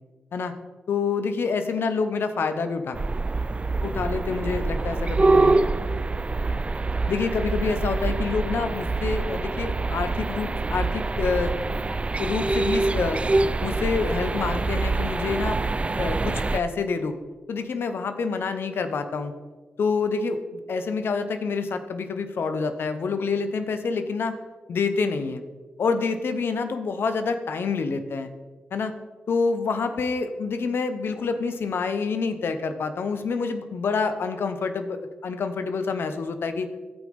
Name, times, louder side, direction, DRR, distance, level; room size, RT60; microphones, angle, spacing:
voice 1, 0.9-3.0 3.8-5.5 7.1-11.5 12.2-13.2 13.6-15.6 15.9-17.1 17.5-19.3 19.8-24.3 24.7-25.4 25.8-28.3 28.7-28.9 29.3-35.0 35.2-36.7, left 4 dB, 65° left, 9 dB, 0.8 m, -27 dB
sound 1, 2.9-16.6, right 3 dB, 30° right, 0.4 m, -25 dB
15.5 x 5.3 x 3.5 m, 1.3 s
supercardioid pair, 45°, 4 cm